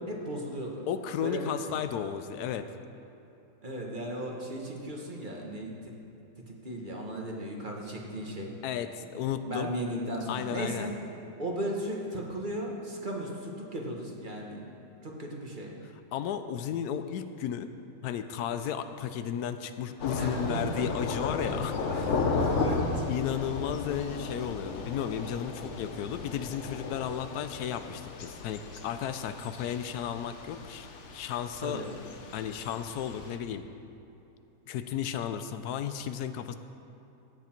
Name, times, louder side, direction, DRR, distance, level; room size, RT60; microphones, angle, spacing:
voice 1, 0.0-0.9 1.2-1.4 3.6-5.9 6.5-8.5 9.4-10.9 11.4-14.6 15.0-15.7 20.2-20.9 21.9-23.0 31.6-31.9, right 1 dB, 35° right, -1 dB, 1.5 m, -36 dB
voice 2, 0.9-2.7 8.6-9.7 10.3-10.9 16.1-17.7 18.0-22.1 23.1-30.9 31.1-31.8 32.3-33.6 34.7-36.6, left 9 dB, 85° left, 10 dB, 1.1 m, -34 dB
Thunder / Rain, 20.0-33.4, left 4 dB, 55° left, 1.1 m, -35 dB
16.5 x 8.4 x 4.4 m, 2.9 s
omnidirectional pair, 1.6 m